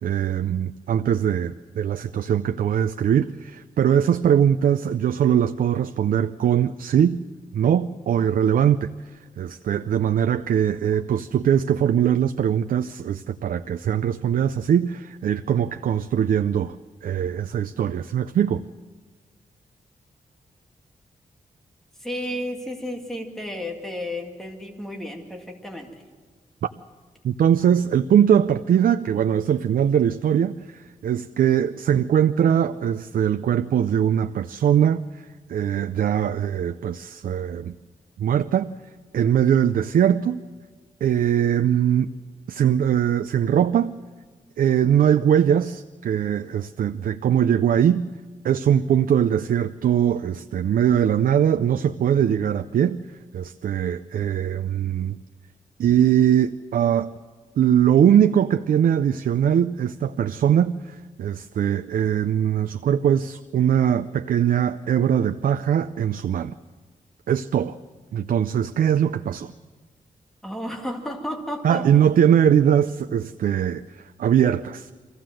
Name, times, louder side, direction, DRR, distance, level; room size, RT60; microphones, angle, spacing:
voice 1, 0.0-7.2 7.5-8.9 9.4-16.8 17.0-18.6 27.2-35.0 35.5-37.8 38.2-38.7 39.1-40.4 41.0-42.1 42.5-43.9 44.6-48.1 48.4-53.0 53.3-55.2 55.8-57.1 57.6-66.5 67.3-67.8 68.1-69.5 71.6-74.9, right 9 dB, 90° right, 9 dB, 0.5 m, -21 dB
voice 2, 22.0-26.0 70.4-71.8, left 1 dB, ahead, 1 dB, 2.1 m, -32 dB
24.0 x 15.5 x 7.6 m, 1.5 s
wide cardioid pair, 155°, 14 cm